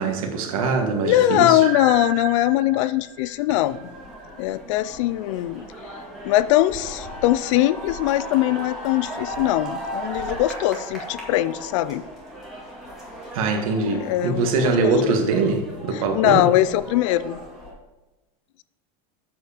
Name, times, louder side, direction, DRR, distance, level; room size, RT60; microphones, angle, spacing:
voice 1, 0.0-1.6 13.3-16.5, right 4 dB, 65° right, 5 dB, 1.6 m, -23 dB
voice 2, 1.0-3.9 4.4-5.7 6.2-12.0 13.8-15.1 15.9-17.4, left 14 dB, 55° left, 16 dB, 0.4 m, -21 dB
sound 1, 1.6-4.5, right 6 dB, 35° right, 1.6 m, -35 dB
sound 2, 3.5-17.7, equal, ahead, 2.0 m, -37 dB
8.1 x 7.0 x 5.0 m, 1.1 s
supercardioid pair, 180°, 19 cm